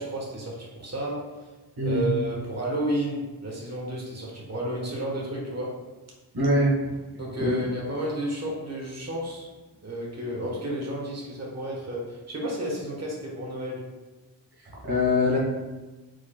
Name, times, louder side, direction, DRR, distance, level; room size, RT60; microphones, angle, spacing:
voice 1, 0.0-1.5 1.8-5.7 7.2-9.5 9.8-13.8, right 1 dB, 40° right, -3 dB, 1.3 m, -32 dB
voice 2, 1.8-2.1 6.3-6.7 7.4-7.6 14.8-15.4, left 1 dB, 70° right, -5 dB, 1.3 m, -22 dB
4.6 x 4.6 x 2.3 m, 1.2 s
cardioid pair, 45°, 40 cm